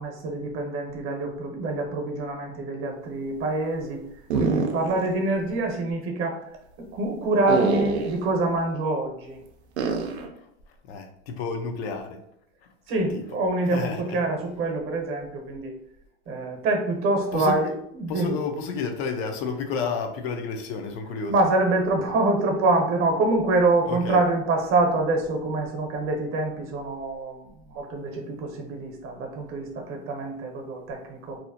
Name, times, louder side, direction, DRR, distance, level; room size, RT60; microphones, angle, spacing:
voice 1, 0.0-4.0 4.3-6.4 6.8-9.4 12.9-15.7 16.3-17.7 18.0-18.3 21.3-31.4, right 2 dB, 40° right, 0.8 m, -25 dB
sound 1, 4.3-5.1 5.5-5.6 7.5-8.3 9.8-10.3, right 4 dB, 85° right, 0.5 m, -26 dB
voice 2, 10.8-12.2 13.1-13.2 13.7-14.2 17.3-17.6 18.1-21.3 23.9-24.2, left 5 dB, 65° left, 0.6 m, -31 dB
2.7 x 2.0 x 2.7 m
hypercardioid pair, 100°, 32 cm